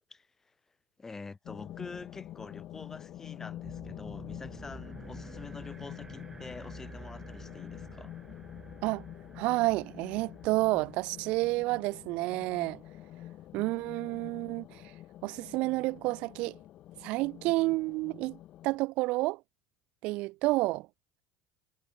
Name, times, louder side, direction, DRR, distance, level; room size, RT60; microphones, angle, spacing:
voice 1, 0.1-0.5 1.0-8.1, left 4 dB, 20° left, 0.8 m, -46 dB
sound 1, 1.5-18.8, left 13 dB, 55° left, 1.0 m, -47 dB
sound 2, 3.6-11.7, right 4 dB, 20° right, 1.1 m, -50 dB
voice 2, 9.4-12.8 13.5-14.8 15.2-16.5 17.0-18.4 18.6-19.4 20.0-20.9, right 21 dB, 65° right, 0.5 m, -30 dB
hypercardioid pair, 75°, 2 cm